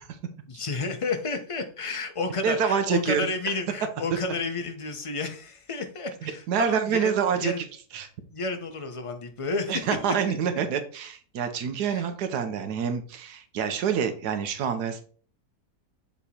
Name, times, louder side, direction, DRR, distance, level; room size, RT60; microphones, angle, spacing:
voice 1, 0.5-7.1 7.4-7.6 8.3-9.8 10.3-10.4 11.9-12.0, left 3 dB, 35° left, 6 dB, 0.5 m, -31 dB
voice 2, 2.4-3.3 6.2-7.6 7.9-8.1 9.7-15.0, right 7 dB, 85° right, 8 dB, 1.3 m, -27 dB
7.1 x 3.6 x 4.2 m, 0.44 s
omnidirectional pair, 1.7 m